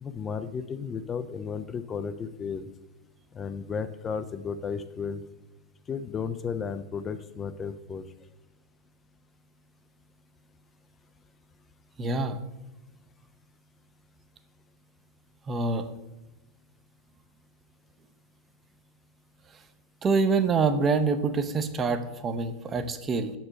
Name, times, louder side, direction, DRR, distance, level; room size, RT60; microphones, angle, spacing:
voice 1, 0.0-2.7 3.3-5.2 5.9-8.1, left 6 dB, 20° left, 10 dB, 0.4 m, -34 dB
voice 2, 12.0-12.4 15.5-15.9 20.0-23.3, right 4 dB, 20° right, 9 dB, 0.6 m, -26 dB
6.5 x 4.7 x 6.3 m, 1.1 s
figure-of-eight pair, 90°, 0 cm